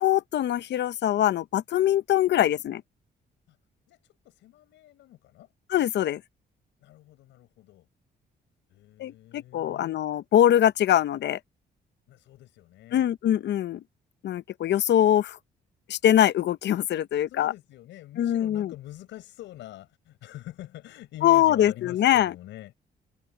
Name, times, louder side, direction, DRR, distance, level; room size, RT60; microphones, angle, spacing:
voice 1, 0.0-2.8 5.7-6.2 9.0-11.4 12.9-13.8 14.2-15.4 15.9-17.5 18.2-18.7 21.2-22.3, left 11 dB, 70° left, 0.8 m, -23 dB
voice 2, 3.9-5.5 6.8-7.9 8.7-10.0 12.1-13.1 17.3-22.7, left 15 dB, 90° left, 5.4 m, -45 dB
cardioid pair, 70°, 19 cm